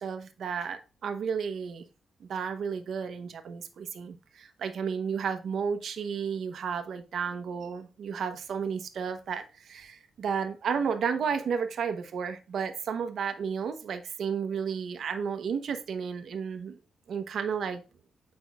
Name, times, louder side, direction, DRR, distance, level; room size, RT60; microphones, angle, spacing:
voice 1, 0.0-1.8 2.2-16.8 17.1-17.8, right 6 dB, 60° right, 0.8 m, -32 dB
8.2 x 5.3 x 2.3 m
wide cardioid pair, 180°, 0 cm